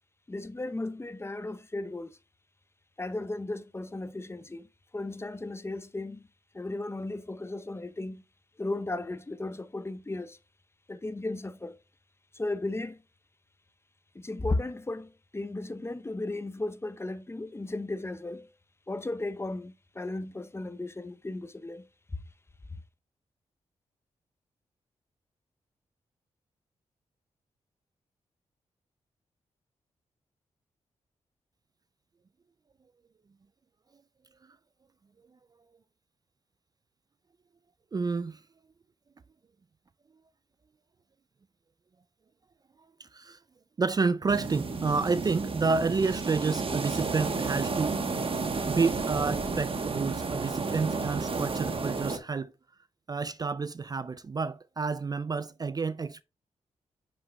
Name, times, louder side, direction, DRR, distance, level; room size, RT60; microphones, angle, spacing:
voice 1, 0.3-2.2 3.0-4.7 4.9-6.3 6.5-8.2 8.6-10.4 10.9-11.8 12.3-13.0 14.1-18.5 18.9-21.9 22.7-22.8, left 2 dB, 20° left, 0.7 m, -35 dB
voice 2, 37.9-38.4 43.0-43.4 43.8-48.0 48.7-52.5 53.1-56.2, right 4 dB, 35° right, 0.3 m, -29 dB
sound 1, 44.3-52.2, right 4 dB, 50° right, 1.1 m, -32 dB
9.2 x 6.1 x 2.2 m
cardioid pair, 55°, 12 cm